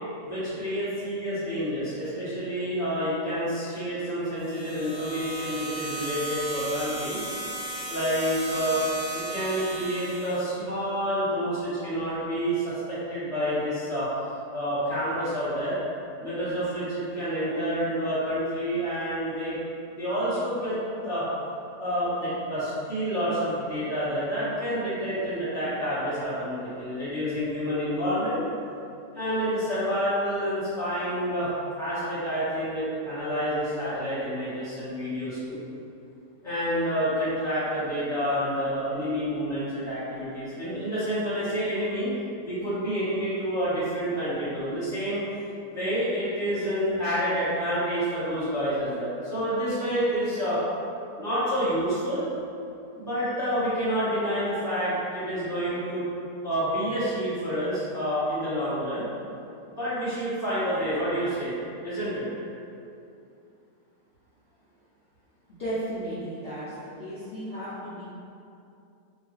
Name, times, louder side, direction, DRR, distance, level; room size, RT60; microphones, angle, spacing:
voice 1, 0.2-7.2 7.9-8.8 9.1-14.1 14.5-15.8 16.2-19.6 19.9-21.3 21.8-28.4 29.1-31.5 31.8-35.6 36.4-42.1 42.4-45.2 45.7-50.6 51.2-52.3 52.9-56.0 56.4-59.0 59.7-61.5 61.8-62.2, equal, ahead, -13 dB, 1.1 m, -28 dB
sound 1, 4.4-10.6, right 2 dB, 80° left, 1.3 m, -35 dB
voice 2, 65.6-66.6 67.0-68.0, right 1 dB, 65° left, -13 dB, 0.6 m, -34 dB
2.9 x 2.3 x 3.1 m, 2.6 s
omnidirectional pair, 1.8 m